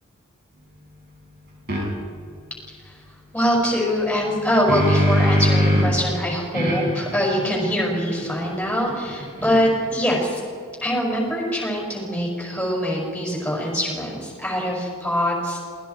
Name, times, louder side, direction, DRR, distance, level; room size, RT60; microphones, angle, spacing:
sound 1, 1.7-1.8 4.2-6.0 6.5-9.9, equal, 50° right, 7.1 m, -23 dB
voice 1, 3.3-10.4 10.8-15.6, equal, 5° left, -3 dB, 6.3 m, -23 dB
27.5 x 20.5 x 4.8 m, 2.2 s
head